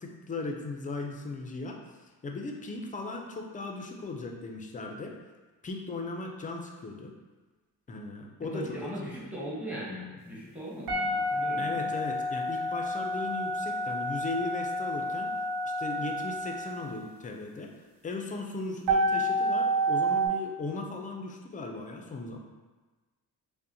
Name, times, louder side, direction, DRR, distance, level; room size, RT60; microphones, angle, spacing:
voice 1, 0.0-1.8 2.2-5.1 5.6-7.1 7.9-8.9 11.6-15.3 15.8-17.7 18.0-22.4, left 3 dB, 20° left, 2 dB, 0.4 m, -37 dB
voice 2, 8.5-11.9, equal, 5° right, -6 dB, 0.9 m, -38 dB
sound 1, 10.9-16.9 18.9-20.3, right 1 dB, 65° right, 0.7 m, -29 dB
5.4 x 2.1 x 2.6 m, 1.3 s
cardioid pair, 130°, 37 cm